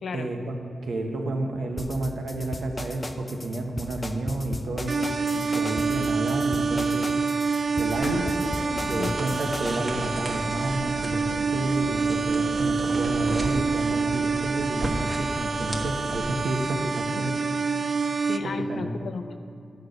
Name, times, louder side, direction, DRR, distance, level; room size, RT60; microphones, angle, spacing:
voice 1, 0.1-5.1 5.3-7.1 7.8-8.2 8.9-17.3 18.4-19.0, right 2 dB, 85° right, 3 dB, 1.0 m, -30 dB
sound 1, 1.8-9.8, left 1 dB, 20° left, 0.5 m, -35 dB
sound 2, 4.9-18.4, right 4 dB, 45° right, 0.4 m, -27 dB
sound 3, 7.9-16.4, right 1 dB, 25° right, 1.1 m, -36 dB
voice 2, 8.0-9.2 17.1-17.3 18.3-19.4, left 4 dB, 70° left, 8 dB, 0.6 m, -34 dB
11.5 x 4.5 x 6.5 m, 2.6 s
wide cardioid pair, 115°, 0 cm